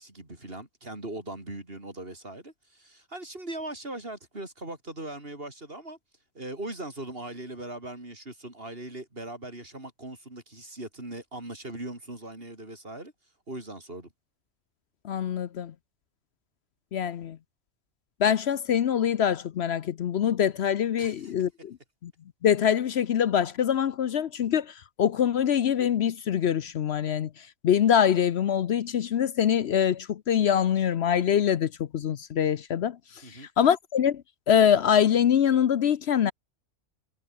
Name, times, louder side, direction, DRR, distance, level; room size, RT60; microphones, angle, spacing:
voice 1, 0.0-6.0 6.3-13.1 13.5-14.1 21.0-21.3 33.2-33.5, right 1 dB, 50° right, 5.5 m, -40 dB
voice 2, 15.0-15.7 16.9-17.4 18.2-21.8 22.0-22.1 22.4-27.3 27.6-33.0 33.3-34.2 34.5-36.3, left 9 dB, 65° left, 0.9 m, -24 dB
omnidirectional pair, 1.2 m